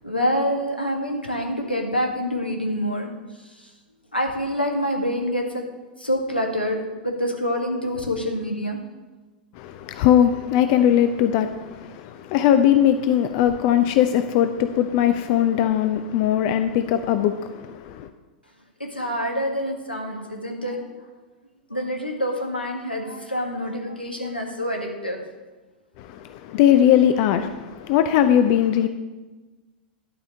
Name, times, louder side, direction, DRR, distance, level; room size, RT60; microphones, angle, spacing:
voice 1, 0.0-3.1 4.1-5.6 6.0-8.8 18.8-20.9 21.7-25.2, equal, 90° left, 1.7 m, -26 dB
voice 2, 9.6-18.1 26.0-28.9, left 10 dB, 45° left, 0.6 m, -20 dB
11.5 x 5.1 x 7.3 m
figure-of-eight pair, 95°, 5 cm